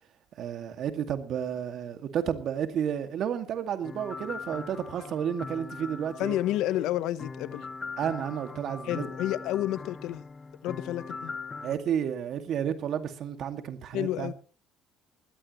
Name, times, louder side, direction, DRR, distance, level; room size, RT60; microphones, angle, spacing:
voice 1, 0.4-6.3 8.0-9.1 11.6-14.3, right 9 dB, 60° right, 2.1 m, -31 dB
sound 1, 3.8-11.8, left 4 dB, 30° left, 1.2 m, -41 dB
voice 2, 6.2-7.7 8.8-10.2 10.6-11.3 13.9-14.3, left 13 dB, 75° left, 0.9 m, -30 dB
20.0 x 15.0 x 3.1 m
supercardioid pair, 80°, 0 cm